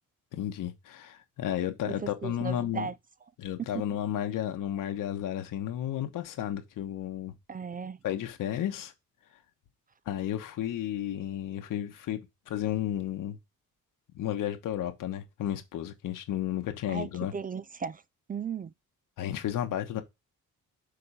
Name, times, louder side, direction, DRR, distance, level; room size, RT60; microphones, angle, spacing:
voice 1, 0.4-2.9 3.4-7.3 8.0-8.9 10.1-12.2 12.5-13.4 14.1-17.3 19.2-20.0, left 11 dB, 80° left, 1.3 m, -32 dB
voice 2, 1.9-3.0 3.6-3.8 7.5-8.0 16.9-18.0 18.3-18.7, right 6 dB, 30° right, 0.4 m, -36 dB
6.6 x 3.9 x 5.5 m
cardioid pair, 100°, 32 cm